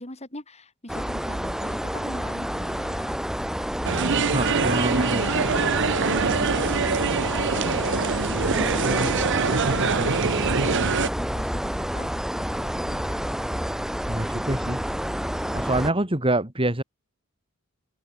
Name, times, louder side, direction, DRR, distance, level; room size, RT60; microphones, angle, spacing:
voice 1, 0.0-4.3 4.9-12.1 12.4-13.4, left 1 dB, 30° left, 7.8 m, -42 dB
sound 1, 0.9-15.9, equal, ahead, 1.3 m, -29 dB
sound 2, 3.8-11.1, right 5 dB, 60° right, 0.9 m, -24 dB
voice 2, 4.3-5.6 14.1-14.8 15.5-16.8, right 1 dB, 25° right, 3.1 m, -26 dB
open air
head